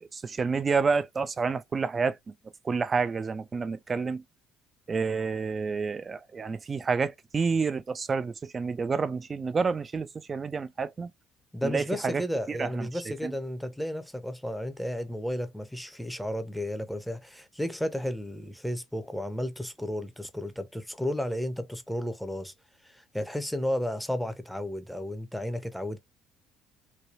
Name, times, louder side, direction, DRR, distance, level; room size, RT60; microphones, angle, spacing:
voice 1, 0.1-2.2 2.6-4.2 4.9-11.1 11.6-12.2 12.5-12.9 13.2-13.3, right 5 dB, 35° right, 0.5 m, -29 dB
voice 2, 11.5-22.5 22.8-26.0, equal, ahead, 0.7 m, -33 dB
3.3 x 2.3 x 2.5 m
hypercardioid pair, 55°, 0 cm